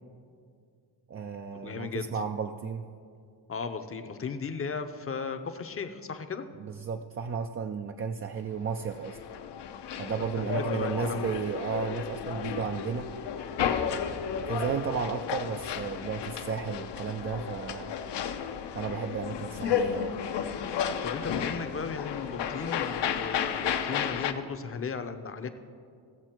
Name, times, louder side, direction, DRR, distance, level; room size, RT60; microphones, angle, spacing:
voice 1, 1.1-2.8 6.6-9.2 10.0-13.1 13.8-17.9 18.3-18.4 18.7-20.2, right 6 dB, 35° right, 5 dB, 0.4 m, -33 dB
voice 2, 1.6-2.2 3.5-6.5 10.2-11.3 21.0-25.5, left 5 dB, 30° left, 9 dB, 0.7 m, -36 dB
sound 1, 8.7-24.3, left 8 dB, 70° left, 0.7 m, -33 dB
16.5 x 6.9 x 4.5 m, 2.3 s
cardioid pair, 110°, 44 cm